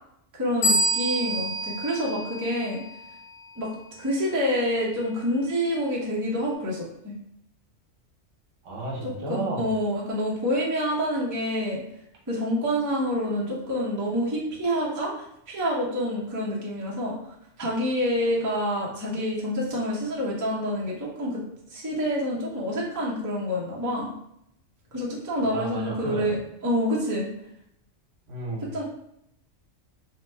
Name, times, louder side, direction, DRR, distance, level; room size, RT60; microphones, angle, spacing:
voice 1, 0.4-2.8 3.6-3.7 4.0-7.1 9.3-11.8 12.3-17.2 17.6-21.4 21.7-24.1 24.9-26.4 26.6-27.3 28.6-28.8, equal, 20° right, -5 dB, 0.6 m, -27 dB
sound 1, 0.6-3.1, right 1 dB, 65° left, 0.9 m, -27 dB
voice 2, 8.6-9.7 25.4-26.4 28.3-28.7, right 2 dB, 75° right, -2 dB, 1.1 m, -32 dB
2.9 x 2.1 x 3.2 m, 0.75 s
omnidirectional pair, 1.3 m